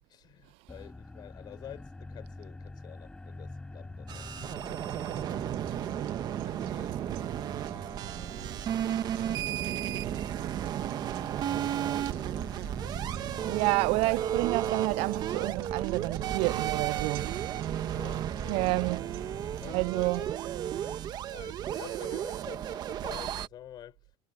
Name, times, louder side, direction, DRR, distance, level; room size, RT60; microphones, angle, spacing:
voice 1, 0.1-5.9 6.4-10.5 11.1-13.0 13.6-13.7 17.9-18.7 19.6-20.3 20.7-21.1 21.3-24.0, left 11 dB, 35° left, 4.7 m, -51 dB
sound 1, 0.7-19.9, left 2 dB, 5° left, 5.9 m, -47 dB
sound 2, 4.1-23.5, right 11 dB, 30° right, 1.3 m, -33 dB
sound 3, 4.4-20.4, right 22 dB, 80° right, 7.3 m, -47 dB
voice 2, 13.4-17.3 18.5-19.1 19.7-20.3, right 24 dB, 50° right, 0.4 m, -29 dB
cardioid pair, 160°, 13 cm